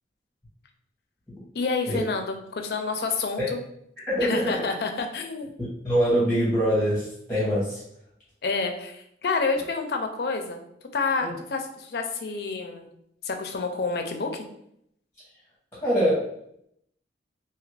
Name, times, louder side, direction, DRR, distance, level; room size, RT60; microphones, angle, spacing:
voice 1, 1.5-3.6 4.2-5.5 8.4-10.6 10.9-12.9 13.2-14.5, left 4 dB, 55° left, 4 dB, 0.4 m, -28 dB
voice 2, 4.1-4.5 5.6-7.8 11.2-11.3 15.8-16.2, equal, 10° left, -8 dB, 0.9 m, -24 dB
2.8 x 2.4 x 3.2 m, 0.74 s
head